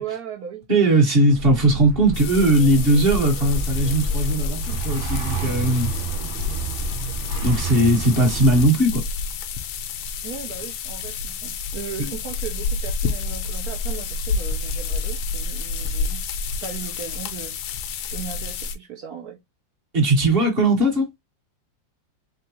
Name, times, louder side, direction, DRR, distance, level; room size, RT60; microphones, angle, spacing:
voice 1, 0.0-0.7 10.2-16.2 16.6-17.8 18.1-19.4, right 8 dB, 65° right, 1.0 m, -37 dB
voice 2, 0.7-5.9 7.4-9.0 12.0-12.1 19.9-21.1, right 1 dB, 35° right, 1.3 m, -19 dB
sound 1, 1.3-8.7, right 3 dB, 85° right, 1.6 m, -30 dB
sound 2, 2.1-18.8, left 4 dB, 80° left, 1.3 m, -29 dB
3.7 x 3.6 x 2.8 m
omnidirectional pair, 2.1 m